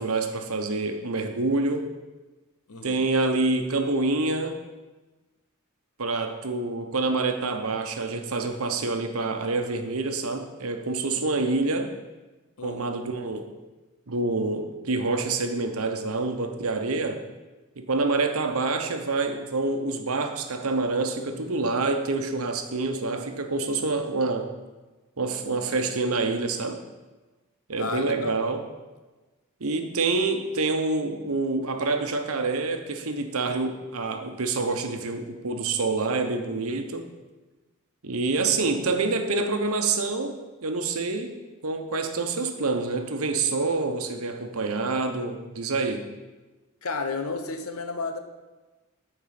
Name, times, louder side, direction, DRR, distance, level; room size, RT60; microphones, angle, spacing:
voice 1, 0.0-1.9 2.8-4.6 6.0-11.9 12.6-13.5 14.1-17.2 17.8-24.5 25.2-26.8 27.7-28.6 29.6-37.0 38.0-41.3 41.6-46.1, right 3 dB, 80° right, 6 dB, 1.0 m, -27 dB
voice 2, 2.7-3.0 12.6-12.8 27.8-28.4 46.8-48.2, left 3 dB, 80° left, 7 dB, 1.0 m, -32 dB
13.5 x 4.6 x 5.9 m, 1.2 s
head